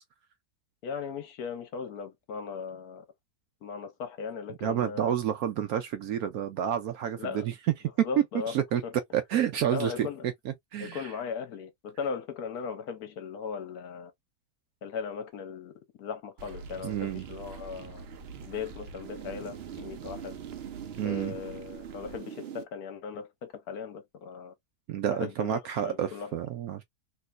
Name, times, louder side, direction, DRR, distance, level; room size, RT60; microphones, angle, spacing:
voice 1, 0.8-3.0 3.6-5.1 7.2-7.5 8.0-8.6 8.8-8.9 9.7-10.3 10.8-14.1 14.8-15.7 16.0-18.1 18.4-20.3 21.0-24.5 25.1-26.3, left 6 dB, 65° left, 1.1 m, -38 dB
voice 2, 4.6-7.5 8.0-8.8 9.1-10.1 10.7-11.1 16.8-17.3 21.0-21.4 24.9-26.8, right 10 dB, 70° right, 0.9 m, -29 dB
sound 1, 16.4-22.6, right 7 dB, 85° right, 0.5 m, -43 dB
3.2 x 3.0 x 2.4 m
omnidirectional pair, 1.9 m